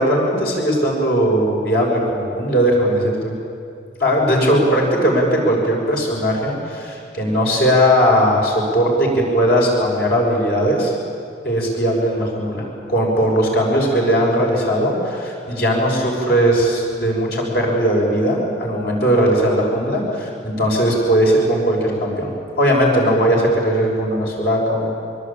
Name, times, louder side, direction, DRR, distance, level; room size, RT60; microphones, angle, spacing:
voice 1, 0.0-3.3 4.0-10.9 11.4-22.3 22.6-24.9, equal, 60° left, -1 dB, 6.4 m, -18 dB
23.5 x 23.0 x 8.7 m, 2.4 s
head